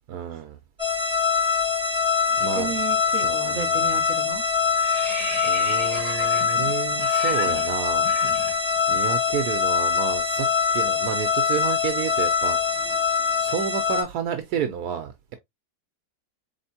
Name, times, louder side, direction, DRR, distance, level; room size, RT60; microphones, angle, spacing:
voice 1, 0.1-0.6 2.4-2.7 3.2-3.9 5.4-8.1 8.9-12.9 13.4-15.4, right 8 dB, 80° right, 1.2 m, -30 dB
sound 1, 0.8-14.0, left 6 dB, 5° right, 2.8 m, -23 dB
voice 2, 2.3-4.5, right 6 dB, 55° right, 1.3 m, -34 dB
sound 2, 3.5-3.8 4.1-9.1 9.3-9.5 9.8-13.9, left 2 dB, 20° left, 1.6 m, -38 dB
4.2 x 3.5 x 2.7 m
omnidirectional pair, 1.7 m